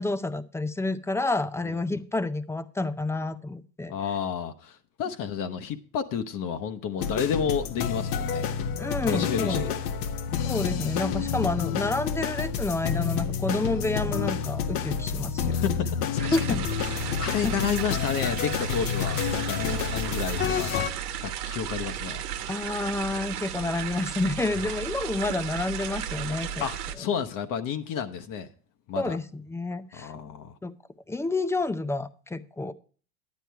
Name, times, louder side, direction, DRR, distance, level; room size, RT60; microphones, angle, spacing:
voice 1, 0.0-3.9 8.8-9.6 10.5-15.7 16.3-16.6 17.4-17.5 22.5-26.7 29.0-30.1 30.6-30.7 31.1-32.7, left 2 dB, 5° left, 0.5 m, -29 dB
voice 2, 3.9-8.5 9.0-9.7 15.5-20.9 21.2-22.2 24.5-24.7 26.6-28.5 28.9-29.2 29.9-30.5, left 7 dB, 45° left, 1.0 m, -31 dB
sound 1, 7.0-20.9, left 7 dB, 70° left, 1.1 m, -29 dB
sound 2, 16.2-27.0, right 9 dB, 80° right, 1.2 m, -34 dB
10.5 x 9.0 x 4.6 m
hypercardioid pair, 100°, 45 cm